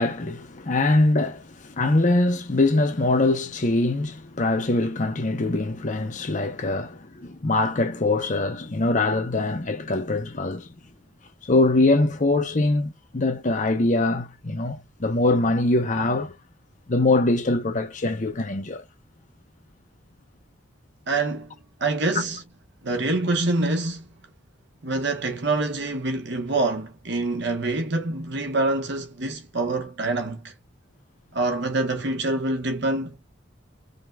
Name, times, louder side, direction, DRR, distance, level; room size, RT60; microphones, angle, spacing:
voice 1, 0.0-10.7 11.4-16.3 16.9-18.8, left 2 dB, 40° left, 0.8 m, -23 dB
voice 2, 21.1-21.5 21.8-22.4 22.8-24.1 24.8-30.5 31.3-33.2, right 2 dB, 60° right, 1.2 m, -26 dB
5.2 x 3.5 x 2.4 m
head